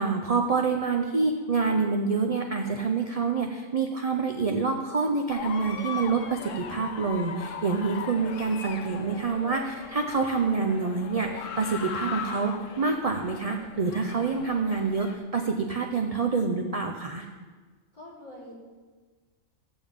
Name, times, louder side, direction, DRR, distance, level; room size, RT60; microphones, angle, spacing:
voice 1, 0.0-17.3, right 4 dB, 40° right, 3 dB, 0.6 m, -27 dB
sound 1, 5.3-15.2, left 6 dB, 75° left, 1.1 m, -39 dB
voice 2, 15.8-16.2 17.9-18.5, left 1 dB, 35° left, -8 dB, 4.1 m, -46 dB
14.5 x 8.9 x 3.6 m, 1.4 s
omnidirectional pair, 1.3 m